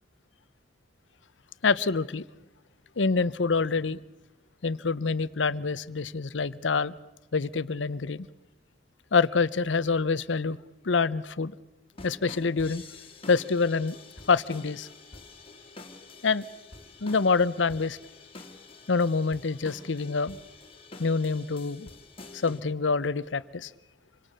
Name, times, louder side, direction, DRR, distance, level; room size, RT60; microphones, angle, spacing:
voice 1, 1.6-2.2 3.0-4.0 4.6-6.9 7.3-8.3 9.1-10.6 10.8-11.6 12.0-12.8 13.3-14.0 14.3-14.9 16.2-16.4 17.0-18.0 18.9-20.4 21.0-21.9 22.3-23.7, left 4 dB, 90° left, 17 dB, 0.8 m, -26 dB
sound 1, 11.9-22.6, left 3 dB, 30° left, 2.5 m, -48 dB
26.5 x 25.5 x 6.7 m, 1.0 s
head